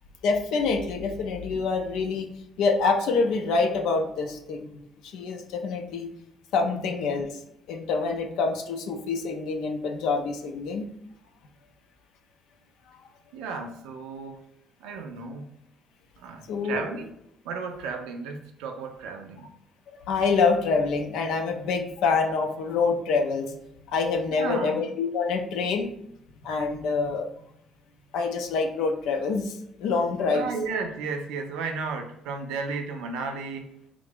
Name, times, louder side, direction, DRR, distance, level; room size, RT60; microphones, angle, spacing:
voice 1, 0.2-2.3 2.6-4.8 5.1-6.1 6.5-7.3 7.7-10.9 16.5-16.9 20.1-23.6 23.9-25.9 26.4-27.3 28.1-30.5, left 4 dB, 75° left, 4 dB, 0.5 m, -26 dB
voice 2, 13.3-14.4 14.8-15.5 16.2-17.2 17.4-19.5 24.3-24.8 30.3-33.7, right 4 dB, 75° right, 5 dB, 0.4 m, -34 dB
3.3 x 2.5 x 3.3 m, 0.78 s
hypercardioid pair, 55°, 0 cm